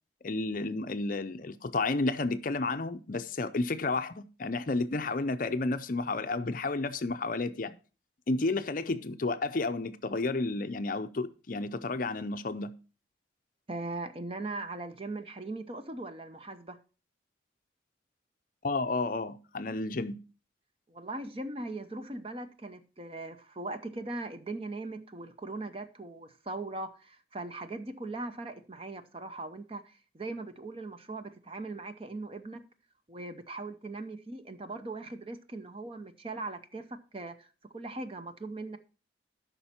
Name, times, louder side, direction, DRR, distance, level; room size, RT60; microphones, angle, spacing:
voice 1, 0.2-7.7 8.3-12.7 18.6-20.2, left 3 dB, 45° left, 0.5 m, -31 dB
voice 2, 13.7-16.8 20.9-32.6 33.1-37.5 37.7-38.8, right 2 dB, 30° right, 0.7 m, -40 dB
12.5 x 5.6 x 4.3 m
head